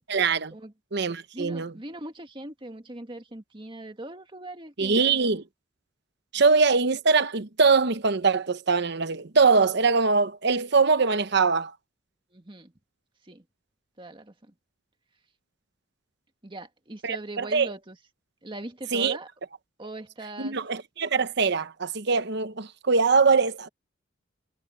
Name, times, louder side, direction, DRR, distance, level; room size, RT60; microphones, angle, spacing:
voice 1, 0.1-0.5 0.9-1.7 4.8-5.4 6.3-11.7 17.0-17.7 18.9-19.2 20.4-23.7, right 4 dB, 60° right, 1.0 m, -22 dB
voice 2, 1.3-5.3 12.3-12.7 13.2-13.4 14.0-14.5 16.4-18.0 18.4-19.3 19.8-20.6, right 1 dB, 25° right, 1.8 m, -40 dB
head